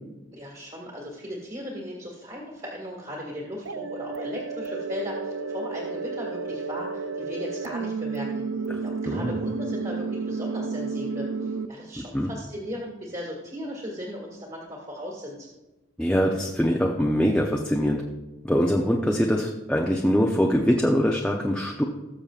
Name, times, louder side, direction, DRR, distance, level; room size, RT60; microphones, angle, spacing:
voice 1, 0.3-15.5, equal, 30° right, -3 dB, 2.0 m, -37 dB
sound 1, 3.7-11.7, right 4 dB, 85° right, 0.5 m, -31 dB
voice 2, 9.1-9.4 12.0-12.3 16.0-18.0 18.4-21.8, equal, 5° left, -1 dB, 0.6 m, -23 dB
19.5 x 6.8 x 2.4 m, 1.1 s
head